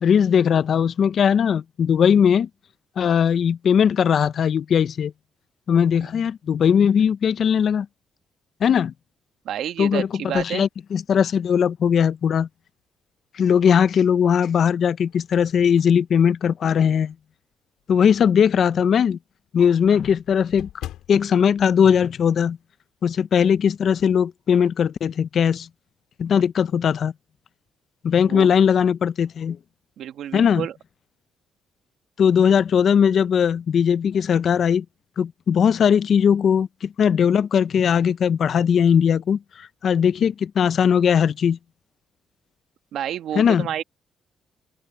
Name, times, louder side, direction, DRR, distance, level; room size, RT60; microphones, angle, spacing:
voice 1, 0.0-2.5 3.0-5.1 5.7-7.9 8.6-8.9 9.8-10.1 10.3-12.5 13.3-17.1 17.9-19.2 19.5-20.7 21.1-22.6 23.0-25.7 26.2-27.1 28.0-29.6 30.3-30.7 32.2-34.8 35.2-41.6 43.3-43.7, left 7 dB, 60° left, 0.8 m, -19 dB
voice 2, 9.5-10.7 28.3-28.5 30.0-30.7 42.9-43.8, right 10 dB, 75° right, 1.8 m, -29 dB
sound 1, 10.3-11.6 12.1-12.2 13.7-14.2 14.7-17.3 17.8-17.9 18.3-18.4 18.7-18.8 19.0-22.8 23.0-23.3 23.6-24.2, left 13 dB, 90° left, 3.1 m, -45 dB
open air
cardioid pair, 90°, 0 cm